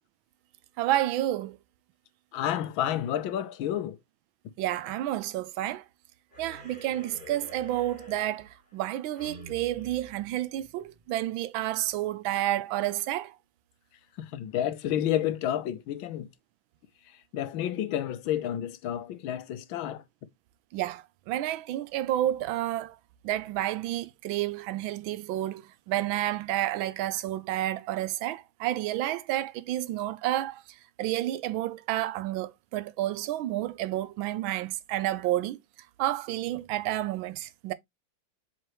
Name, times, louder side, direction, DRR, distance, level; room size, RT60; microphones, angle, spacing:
voice 1, 0.8-1.6 4.6-5.8 6.4-13.3 20.7-23.0 23.2-30.6 31.0-35.6 36.0-37.7, right 14 dB, 90° right, 1.4 m, -30 dB
voice 2, 2.3-4.0 14.2-16.3 17.3-20.0, left 11 dB, 90° left, 1.6 m, -30 dB
sound 1, 6.3-11.0, equal, 20° right, 4.4 m, -49 dB
7.6 x 4.3 x 3.0 m
omnidirectional pair, 2.1 m